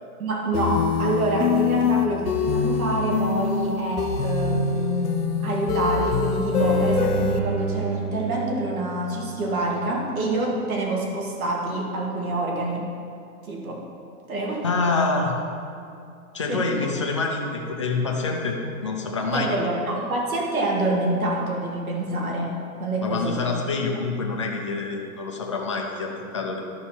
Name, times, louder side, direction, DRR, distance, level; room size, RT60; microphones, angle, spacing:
voice 1, 0.2-5.1 5.4-12.8 13.4-13.8 14.3-14.6 16.5-16.6 19.3-22.5 22.8-23.4, right 1 dB, 70° right, -2 dB, 2.2 m, -26 dB
sound 1, 0.5-7.4, left 6 dB, 90° left, 0.9 m, -24 dB
Bowed string instrument, 6.6-9.7 10.1-10.2, right 6 dB, 35° right, 1.1 m, -30 dB
voice 2, 14.6-15.4 16.3-19.6 23.0-26.6, left 3 dB, 20° left, 0 dB, 0.5 m, -26 dB
12.5 x 5.7 x 4.3 m, 2.5 s
hypercardioid pair, 165°, 45 cm